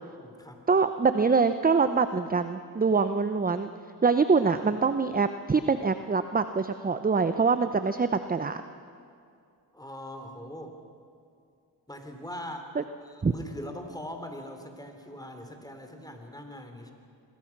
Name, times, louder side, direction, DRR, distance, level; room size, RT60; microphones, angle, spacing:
voice 1, 0.2-0.6 4.3-4.8 9.7-10.8 11.9-12.8 13.0-16.9, left 1 dB, 10° left, 5 dB, 3.5 m, -41 dB
voice 2, 0.7-3.7 4.0-8.6 12.8-12.9 13.2-13.3, right 4 dB, 20° right, 10 dB, 0.8 m, -24 dB
26.0 x 21.0 x 6.0 m, 2.4 s
cardioid pair, 75°, 42 cm